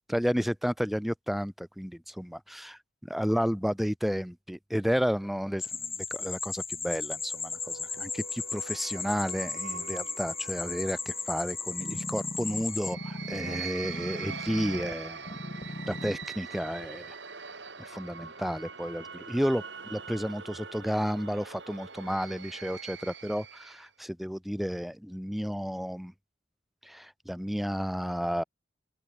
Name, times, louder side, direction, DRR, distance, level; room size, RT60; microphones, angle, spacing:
voice 1, 0.1-2.8 3.1-15.4 15.9-17.1 17.8-26.1 26.8-28.4, equal, ahead, 0.5 m, -32 dB
sound 1, 5.6-12.9, left 5 dB, 15° left, 2.3 m, -36 dB
sound 2, 7.1-23.9, right 6 dB, 70° right, 5.5 m, -43 dB
sound 3, 11.8-14.9 15.3-16.3 16.8-16.9, left 1 dB, 35° left, 1.5 m, -39 dB
open air
head